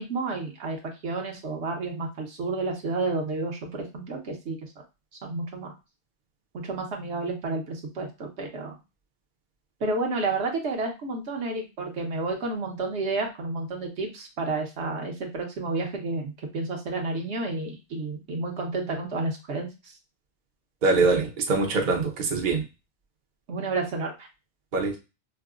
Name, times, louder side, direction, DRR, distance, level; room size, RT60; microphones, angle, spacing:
voice 1, 0.0-4.6 5.2-5.7 6.5-8.8 9.8-19.9 23.5-24.3, right 3 dB, 70° right, 2 dB, 1.1 m, -31 dB
voice 2, 20.8-22.6 24.7-25.0, right 3 dB, 50° right, 2 dB, 0.7 m, -23 dB
4.5 x 2.1 x 2.3 m, 0.27 s
omnidirectional pair, 1.2 m